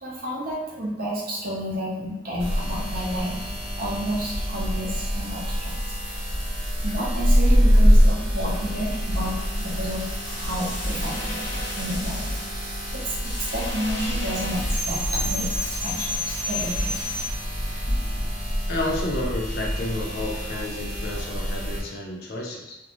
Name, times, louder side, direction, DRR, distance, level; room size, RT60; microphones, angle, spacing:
voice 1, 0.0-3.5 3.8-5.7 6.0-6.3 6.8-9.3 9.6-12.7 12.9-17.1, equal, 50° right, -5 dB, 0.7 m, -31 dB
sound 1, 2.4-21.8, equal, 30° right, 1.0 m, -25 dB
sound 2, 9.0-17.3, left 1 dB, 15° left, 0.7 m, -33 dB
voice 2, 18.7-22.8, left 1 dB, 60° left, -2 dB, 0.6 m, -30 dB
2.5 x 2.0 x 2.9 m, 0.92 s
head